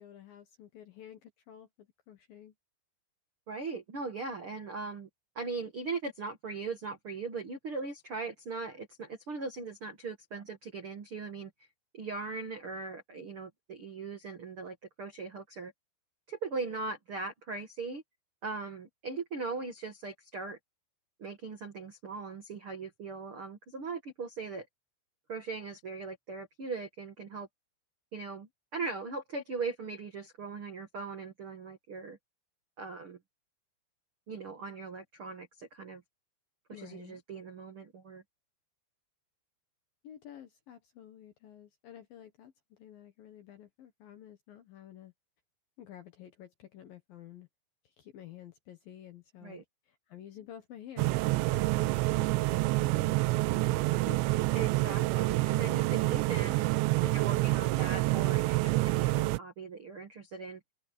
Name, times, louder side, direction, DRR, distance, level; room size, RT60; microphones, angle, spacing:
voice 1, 0.0-2.6 36.7-37.2 40.0-45.1 45.8-47.5 47.8-49.6 49.9-54.2, left 10 dB, 65° left, 2.4 m, -51 dB
voice 2, 3.5-5.1 5.3-11.5 11.9-15.7 16.3-18.0 18.4-20.6 21.2-24.6 25.3-27.5 28.1-32.2 32.8-33.2 34.3-36.0 36.8-38.2 49.4-49.6 54.5-56.6 57.0-60.6, right 4 dB, 65° right, 1.3 m, -39 dB
sound 1, 51.0-59.4, right 20 dB, 85° right, 2.6 m, -28 dB
open air
omnidirectional pair, 5.7 m